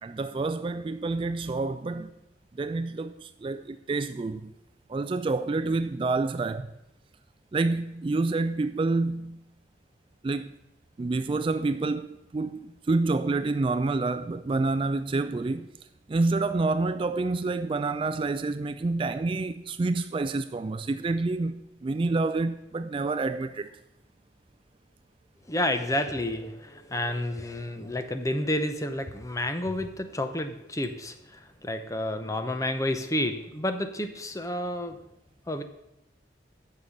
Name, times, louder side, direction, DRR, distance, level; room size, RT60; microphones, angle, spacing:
voice 1, 0.0-2.1 2.5-4.5 4.9-6.7 7.5-9.4 10.2-10.5 11.0-15.7 16.1-23.7, right 3 dB, 30° right, 0.3 m, -28 dB
voice 2, 25.5-35.0 35.5-35.6, left 1 dB, 20° left, 0.7 m, -30 dB
9.2 x 6.7 x 7.1 m
head